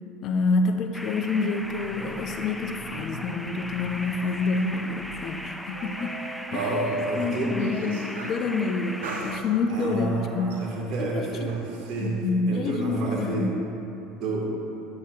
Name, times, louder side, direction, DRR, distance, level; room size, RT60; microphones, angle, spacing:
voice 1, 0.2-6.2 6.5-6.7 7.2-10.5 11.0-11.5 12.0-13.6, left 3 dB, 50° left, 6 dB, 0.6 m, -27 dB
sound 1, 0.9-9.4, equal, 5° left, 0.3 m, -38 dB
sound 2, 1.5-8.5 9.0-10.0 10.5-12.1, right 2 dB, 80° right, 0.6 m, -38 dB
voice 2, 6.5-7.5 9.7-12.1 12.5-13.5 14.1-14.5, right 3 dB, 55° right, -2 dB, 1.6 m, -30 dB
8.6 x 7.6 x 2.4 m, 2.9 s
hypercardioid pair, 80°, 0 cm